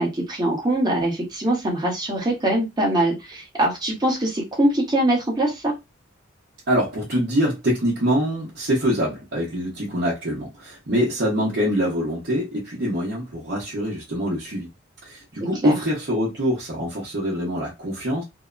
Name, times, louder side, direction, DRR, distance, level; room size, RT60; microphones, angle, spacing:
voice 1, 0.0-5.7 15.6-15.7, right 1 dB, 20° right, 1.0 m, -22 dB
voice 2, 6.7-14.7 15.0-18.2, equal, 55° right, 0.9 m, -24 dB
2.7 x 2.1 x 2.4 m
head